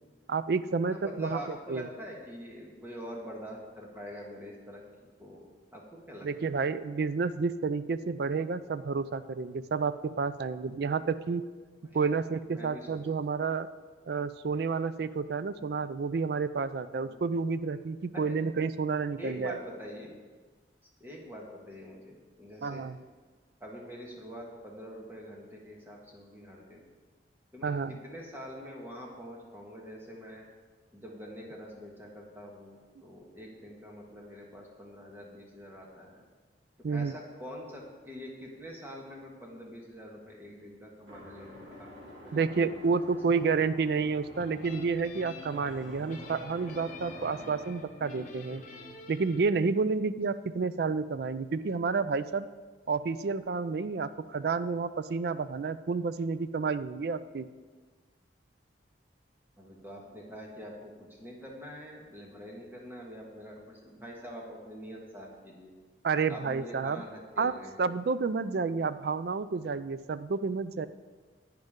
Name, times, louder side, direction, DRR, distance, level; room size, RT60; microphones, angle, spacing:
voice 1, 0.3-1.4 1.7-1.9 6.2-11.4 11.9-13.7 14.1-19.6 22.6-23.0 27.6-28.0 36.8-37.1 42.3-48.6 49.1-52.5 52.9-57.5 66.0-67.0 67.4-67.5 67.8-70.9, right 4 dB, 60° right, 14 dB, 0.4 m, -30 dB
voice 2, 0.8-5.5 5.7-5.8 6.1-6.6 11.9-12.0 12.5-13.0 17.0-17.3 18.1-18.2 19.2-20.1 21.0-22.9 23.6-26.8 27.5-30.5 30.9-36.2 36.9-41.9 42.2-42.7 59.6-65.7 66.3-67.7, equal, 10° right, -2 dB, 1.5 m, -45 dB
sound 1, 41.1-47.7, equal, 75° right, 2.6 m, -49 dB
sound 2, 44.3-49.4, left 2 dB, 45° left, 1.0 m, -47 dB
10.5 x 9.1 x 3.7 m, 1.4 s
head